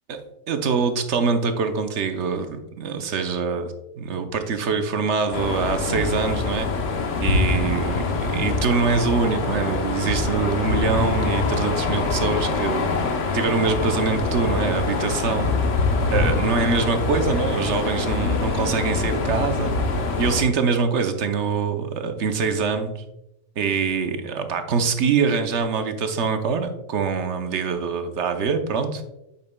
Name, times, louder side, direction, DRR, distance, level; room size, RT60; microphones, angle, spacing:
voice 1, 0.5-6.7 7.2-12.9 13.3-15.5 16.1-19.7 20.2-23.1 23.6-29.0, right 5 dB, 70° right, 7 dB, 1.0 m, -24 dB
sound 1, 5.3-20.4, left 3 dB, 80° left, 1.2 m, -24 dB
8.5 x 6.7 x 2.2 m, 0.90 s
omnidirectional pair, 1.3 m